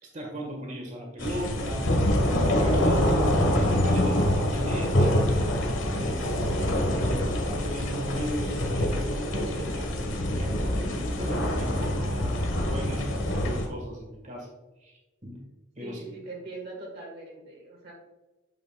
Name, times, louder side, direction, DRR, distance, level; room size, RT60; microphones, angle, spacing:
voice 1, 0.0-12.4 12.7-14.5 14.8-14.9 15.2-15.4 15.8-16.1, equal, 40° right, 0 dB, 1.5 m, -37 dB
sound 1, 1.2-13.7, left 1 dB, 75° left, 1.2 m, -25 dB
voice 2, 15.8-17.9, right 2 dB, 55° right, -1 dB, 1.4 m, -41 dB
8.8 x 5.8 x 2.3 m, 1.1 s
head